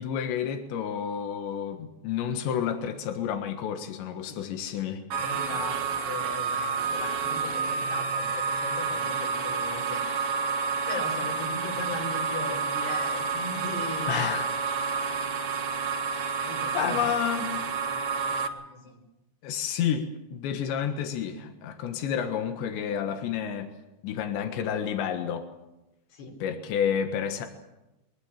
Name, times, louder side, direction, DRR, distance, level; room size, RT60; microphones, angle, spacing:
voice 1, 0.0-5.1 14.1-14.5 16.1-16.5 16.7-17.6 19.4-23.7 24.0-25.5 26.4-27.5, left 8 dB, 90° left, 6 dB, 3.8 m, -30 dB
sound 1, 5.1-18.5, right 5 dB, 65° right, 3.6 m, -29 dB
voice 2, 5.2-10.3 10.9-14.4 16.4-17.0 17.8-19.0 26.1-26.4, left 3 dB, 70° left, 1 dB, 6.8 m, -39 dB
23.0 x 22.0 x 7.4 m, 0.96 s
omnidirectional pair, 5.0 m